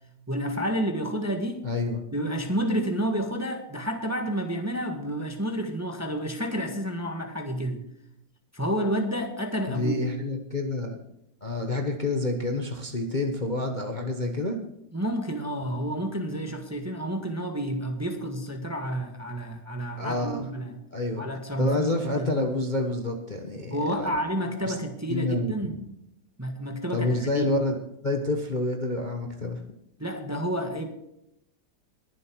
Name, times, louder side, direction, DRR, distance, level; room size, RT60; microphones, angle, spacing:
voice 1, 0.3-1.7 2.1-7.8 8.5-10.0 14.9-20.8 21.2-22.3 23.7-25.8 26.4-27.5 30.0-30.9, right 1 dB, 10° right, 4 dB, 1.4 m, -30 dB
voice 2, 1.6-2.0 9.7-11.0 11.4-14.6 20.0-20.5 20.9-21.2 21.6-24.1 24.7-24.8 25.1-25.5 26.9-27.8 28.0-29.6, left 2 dB, 30° left, 3 dB, 1.2 m, -28 dB
22.0 x 7.6 x 4.6 m, 0.80 s
omnidirectional pair, 2.1 m